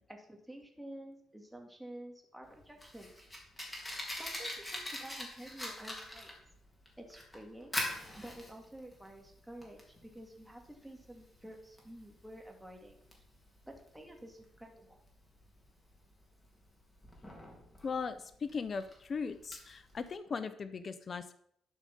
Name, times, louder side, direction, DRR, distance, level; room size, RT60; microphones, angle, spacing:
voice 1, 0.0-3.2 4.1-6.3 7.0-7.7 8.1-13.0 13.6-15.0, right 1 dB, 5° right, 2 dB, 2.5 m, -50 dB
Fire, 2.4-20.1, left 1 dB, 10° left, 3.3 m, -44 dB
voice 2, 17.8-21.3, left 5 dB, 45° left, 11 dB, 0.7 m, -38 dB
12.0 x 5.0 x 5.6 m, 0.70 s
cardioid pair, 90°, 0 cm